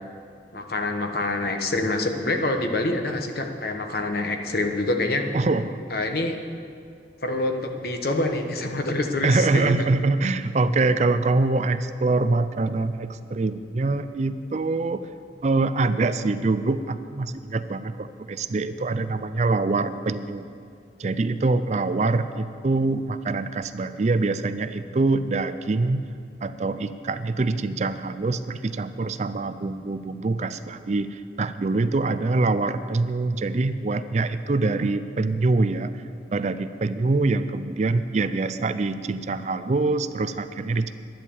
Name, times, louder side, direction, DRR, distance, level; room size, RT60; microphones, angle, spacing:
voice 1, 0.5-5.2 5.9-6.4 7.2-9.7, left 2 dB, 55° left, 5 dB, 1.1 m, -26 dB
voice 2, 5.3-5.8 9.2-15.0 15.4-20.5 21.0-26.1 26.4-36.0 36.3-40.9, right 3 dB, 40° right, 12 dB, 0.4 m, -24 dB
11.0 x 10.5 x 7.1 m, 2.3 s
head